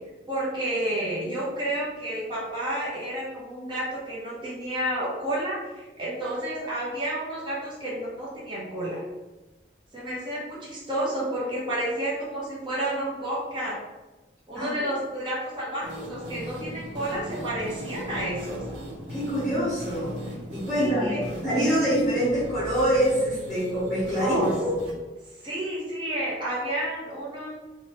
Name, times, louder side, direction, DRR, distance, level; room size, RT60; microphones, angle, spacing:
voice 1, 0.3-9.0 9.9-13.8 14.5-18.6 20.7-21.2 24.2-24.5 25.4-27.5, right 1 dB, 25° right, -6 dB, 0.8 m, -30 dB
voice 2, 14.5-14.9 19.1-24.7, equal, ahead, -17 dB, 1.2 m, -25 dB
sound 1, 15.8-24.9, equal, 85° right, 0.7 m, -38 dB
3.1 x 2.3 x 2.8 m, 1.1 s
head